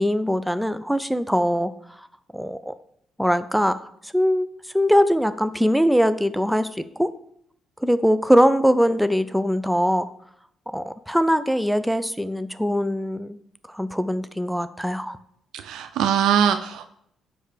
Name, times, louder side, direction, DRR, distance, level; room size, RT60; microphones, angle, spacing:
voice 1, 0.0-1.7 2.3-2.7 3.2-4.5 4.7-7.1 7.8-10.1 10.7-13.4 13.7-15.2, equal, ahead, 12 dB, 0.5 m, -21 dB
voice 2, 15.5-16.9, right 8 dB, 85° right, 10 dB, 0.5 m, -22 dB
9.9 x 3.3 x 6.7 m, 0.70 s
cardioid pair, 90°, 0 cm